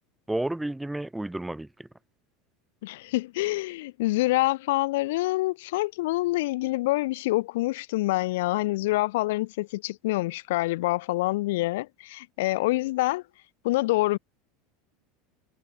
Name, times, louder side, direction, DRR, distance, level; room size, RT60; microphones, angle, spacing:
voice 1, 0.3-1.9, right 1 dB, 5° right, 2.8 m, -31 dB
voice 2, 2.8-13.2 13.6-14.2, left 19 dB, 70° left, 4.0 m, -26 dB
hypercardioid pair, 85°, 0 cm